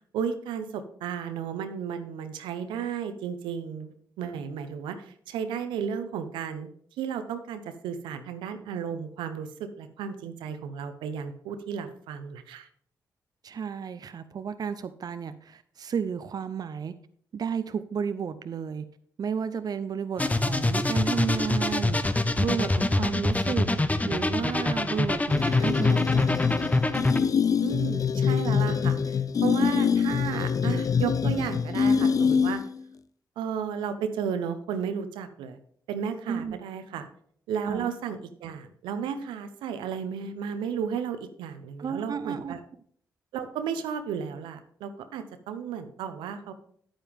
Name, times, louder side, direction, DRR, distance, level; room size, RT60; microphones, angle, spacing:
voice 1, 0.1-6.7 7.0-12.7 27.6-32.6 33.4-35.6 35.9-37.1 37.5-42.6 43.3-46.5, right 7 dB, 90° right, 9 dB, 0.8 m, -33 dB
voice 2, 13.4-16.9 17.3-18.8 19.2-26.6 36.3-36.6 37.7-37.9 41.8-42.5, right 6 dB, 55° right, 11 dB, 0.6 m, -32 dB
sound 1, 20.2-27.2, left 2 dB, 20° left, 0.8 m, -25 dB
sound 2, 25.3-32.8, left 6 dB, 45° left, 0.4 m, -25 dB
8.9 x 8.9 x 3.6 m, 0.62 s
supercardioid pair, 50°, 8 cm